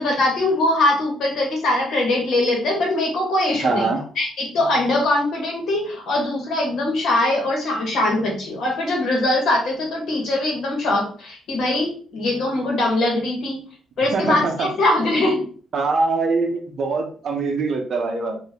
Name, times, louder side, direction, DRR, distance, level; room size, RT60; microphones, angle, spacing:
voice 1, 0.0-3.9 4.2-13.6 14.0-15.4, left 2 dB, 55° left, -1 dB, 1.4 m, -22 dB
voice 2, 3.6-4.0 14.1-14.7 15.7-18.4, right 3 dB, 40° right, 3 dB, 0.7 m, -23 dB
3.6 x 2.6 x 2.9 m, 0.42 s
cardioid pair, 180°, 0 cm